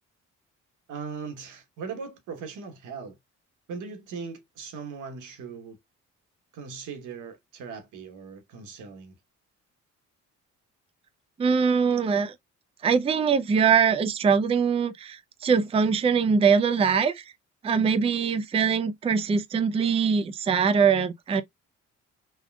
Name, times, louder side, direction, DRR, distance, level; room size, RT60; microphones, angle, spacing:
voice 1, 0.9-3.2 3.7-5.8 6.5-9.1, right 5 dB, 80° right, 1.1 m, -39 dB
voice 2, 11.4-12.3 12.8-17.2 17.6-21.4, right 6 dB, 20° right, 0.4 m, -22 dB
3.5 x 2.2 x 2.2 m
cardioid pair, 90°, 30 cm